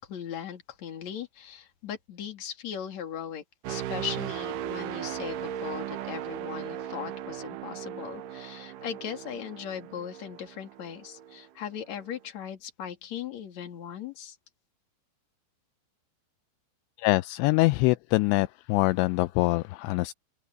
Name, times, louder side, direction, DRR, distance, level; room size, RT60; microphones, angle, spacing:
voice 1, 0.0-14.4, left 9 dB, 45° left, 3.2 m, -38 dB
sound 1, 3.6-11.5 11.9-12.2, right 11 dB, 85° right, 1.9 m, -37 dB
voice 2, 17.0-20.1, left 21 dB, 85° left, 2.8 m, -24 dB
omnidirectional pair, 5.2 m